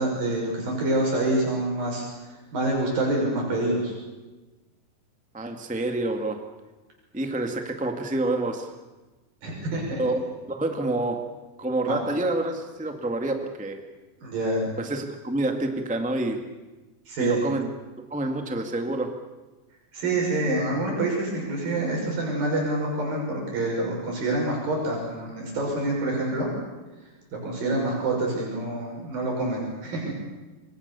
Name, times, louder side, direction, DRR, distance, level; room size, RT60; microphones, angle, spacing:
voice 1, 0.0-2.0 2.3-3.9 9.4-10.0 11.9-12.0 14.2-14.7 17.1-17.4 19.9-26.5 27.3-30.1, right 2 dB, 65° right, -1 dB, 7.6 m, -27 dB
voice 2, 5.3-6.4 7.1-8.7 10.0-11.2 11.6-13.8 14.8-16.4 17.2-17.7 18.1-19.1, right 2 dB, 10° right, 5 dB, 0.5 m, -28 dB
26.5 x 24.0 x 7.0 m, 1.2 s
omnidirectional pair, 4.3 m